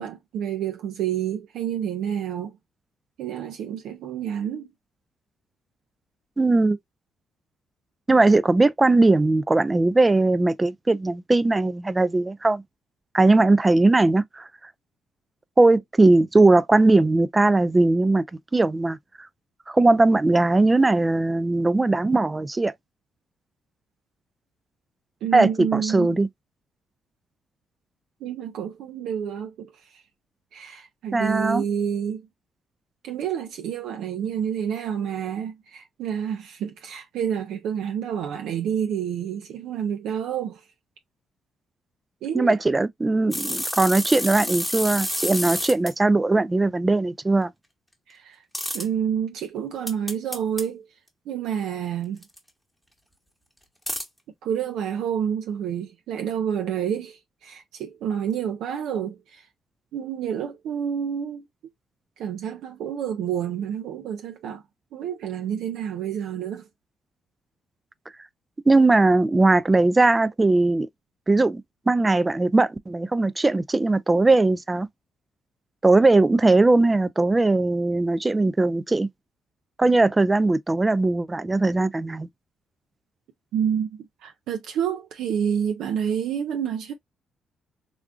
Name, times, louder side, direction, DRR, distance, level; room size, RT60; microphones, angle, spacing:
voice 1, 0.0-2.6 3.2-4.7 25.2-26.2 28.2-30.0 30.5-32.2 33.0-40.6 42.2-42.6 48.1-48.4 48.7-50.9 51.3-52.2 54.4-59.5 59.9-61.4 62.2-64.6 64.9-66.7 83.5-86.9, right 8 dB, 85° right, 0.5 m, -29 dB
voice 2, 6.4-6.8 8.1-12.6 13.1-14.5 15.6-18.2 18.5-19.0 19.7-22.7 25.3-26.3 31.1-31.6 42.3-47.5 68.7-70.9 71.3-74.9 75.8-79.1 79.8-82.3, right 2 dB, 20° right, 0.3 m, -19 dB
sound 1, 43.3-45.9 48.5-48.9 49.9-50.6 52.2-52.4 53.9-54.0, equal, 5° left, 1.0 m, -29 dB
3.6 x 2.4 x 2.3 m
cardioid pair, 90°, 0 cm